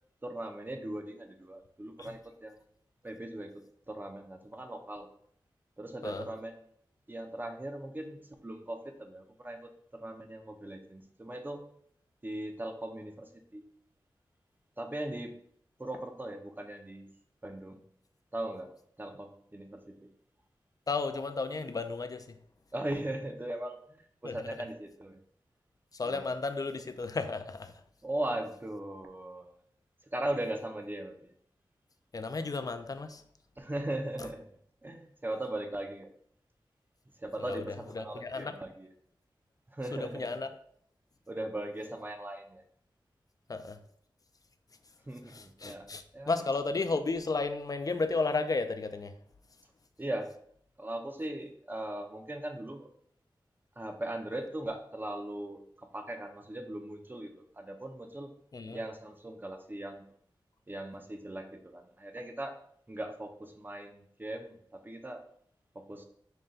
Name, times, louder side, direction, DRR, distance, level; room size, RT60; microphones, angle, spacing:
voice 1, 0.2-2.6 3.0-5.1 5.8-6.6 7.1-9.7 10.0-11.6 12.2-13.6 14.8-15.4 15.8-17.1 17.4-17.8 18.3-18.7 19.0-19.9 22.7-23.8 24.2-25.2 26.1-26.3 28.0-29.5 30.1-31.2 33.6-34.5 34.8-36.1 37.2-38.9 39.7-40.4 41.3-42.6 45.1-45.9 46.1-46.3 50.0-50.4 50.8-52.9 53.8-58.3 58.7-60.0 60.7-62.6 62.9-65.2 65.7-66.0, right 1 dB, 20° right, 5 dB, 0.6 m, -39 dB
voice 2, 20.9-22.4 24.2-24.4 25.9-27.7 32.1-33.2 37.4-37.6 37.9-38.6 39.9-40.5 43.5-43.8 45.3-49.1 58.5-58.8, left 3 dB, 45° left, 9 dB, 0.4 m, -33 dB
5.5 x 2.2 x 3.8 m, 0.66 s
wide cardioid pair, 65°, 9 cm